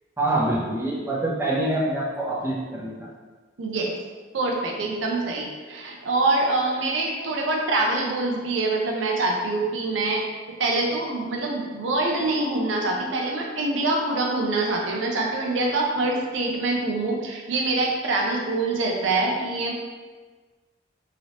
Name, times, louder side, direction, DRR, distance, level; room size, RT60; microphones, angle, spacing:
voice 1, 0.2-3.1, right 1 dB, 15° right, -5 dB, 0.6 m, -25 dB
voice 2, 3.6-3.9 4.3-10.3 10.6-19.7, right 2 dB, 85° right, 0 dB, 0.5 m, -25 dB
3.0 x 2.8 x 2.8 m, 1.4 s
head